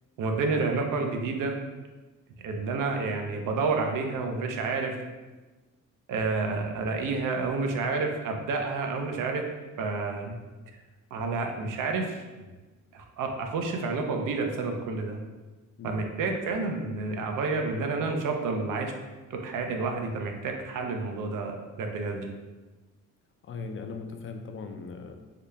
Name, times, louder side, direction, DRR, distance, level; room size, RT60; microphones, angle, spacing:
voice 1, 0.2-1.5 2.4-5.0 6.1-9.4 9.8-10.4 11.1-12.5 12.9-15.2 15.8-18.9 19.3-22.3, right 3 dB, 75° right, 3 dB, 0.6 m, -29 dB
voice 2, 23.4-25.2, left 4 dB, 40° left, 6 dB, 0.4 m, -38 dB
3.9 x 2.2 x 3.2 m, 1.2 s
cardioid pair, 105°, 32 cm